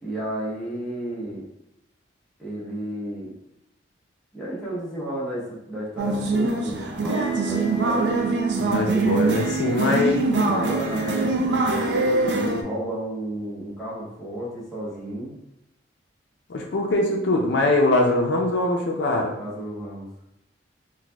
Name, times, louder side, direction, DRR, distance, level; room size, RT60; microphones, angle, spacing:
voice 1, 0.0-1.4 2.4-3.3 4.3-8.2 8.9-9.1 10.3-15.4 19.2-20.1, right 1 dB, ahead, -9 dB, 1.0 m, -32 dB
sound 1, 6.0-12.6, right 3 dB, 65° right, 0.4 m, -23 dB
voice 2, 8.6-10.2 16.5-19.3, left 2 dB, 70° left, 0 dB, 0.4 m, -22 dB
4.0 x 2.7 x 2.3 m, 0.87 s
head